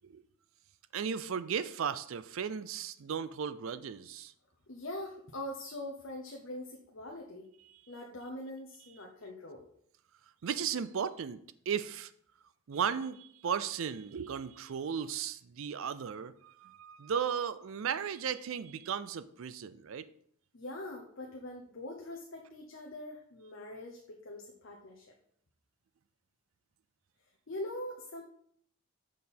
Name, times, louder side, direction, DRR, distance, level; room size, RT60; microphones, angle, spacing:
voice 1, 0.9-4.3 10.4-11.4 11.7-12.1 12.7-20.0, right 7 dB, 65° right, 14 dB, 0.4 m, -35 dB
voice 2, 4.7-7.5 7.9-9.7 20.5-25.1 27.5-28.2, left 1 dB, 55° left, 0 dB, 0.8 m, -43 dB
6.4 x 5.4 x 4.3 m, 0.64 s
head